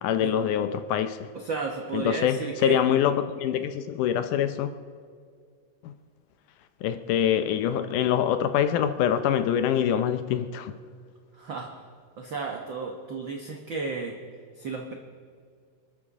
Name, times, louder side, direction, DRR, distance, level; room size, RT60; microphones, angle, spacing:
voice 1, 0.0-1.3 1.9-4.7 5.8-5.9 6.8-10.7, left 9 dB, 75° left, 2.1 m, -25 dB
voice 2, 1.3-2.8 11.3-11.7 12.2-14.2 14.6-14.9, right 4 dB, 80° right, 1.0 m, -33 dB
27.0 x 12.5 x 3.7 m
omnidirectional pair, 3.9 m